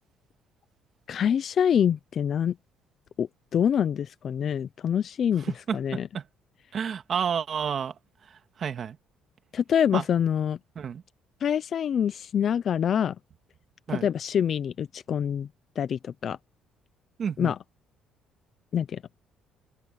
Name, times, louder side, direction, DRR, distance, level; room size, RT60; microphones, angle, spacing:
voice 1, 1.1-2.5 3.2-6.1 9.5-10.6 11.4-13.2 13.9-15.5 15.8-16.4 17.4-17.6 18.7-19.0, left 8 dB, 50° left, 0.7 m, -26 dB
voice 2, 5.4-6.2 6.7-7.9 8.3-9.0 9.9-10.0 10.8-11.0 13.9-14.1 17.2-17.5, right 7 dB, 50° right, 2.3 m, -30 dB
open air
cardioid pair, 100°, 0 cm